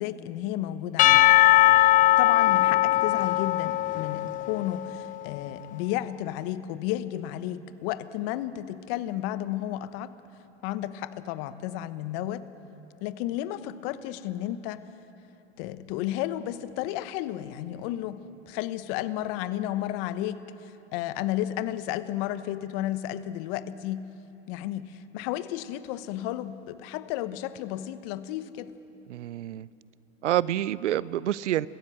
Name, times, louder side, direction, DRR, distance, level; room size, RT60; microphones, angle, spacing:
voice 1, 0.0-1.3 2.2-10.1 10.6-12.4 13.0-14.8 15.6-18.2 18.5-20.4 20.9-24.0 24.5-28.7, left 13 dB, 55° left, 13 dB, 1.1 m, -32 dB
Percussion / Church bell, 1.0-5.2, left 15 dB, 25° left, 0.4 m, -20 dB
voice 2, 29.1-29.7 30.2-31.7, right 12 dB, 85° right, 21 dB, 0.6 m, -27 dB
23.0 x 15.5 x 7.8 m, 3.0 s
hypercardioid pair, 95°, 35 cm